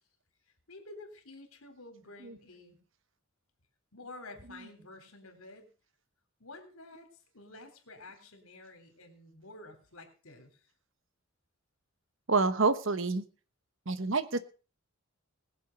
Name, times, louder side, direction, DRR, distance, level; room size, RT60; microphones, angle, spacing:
voice 1, 0.7-2.8 3.9-5.7 6.4-10.6, left 2 dB, 75° left, 6 dB, 3.4 m, -50 dB
voice 2, 12.3-13.2 13.9-14.4, right 3 dB, 60° right, 13 dB, 1.1 m, -28 dB
20.5 x 7.4 x 5.2 m, 0.37 s
head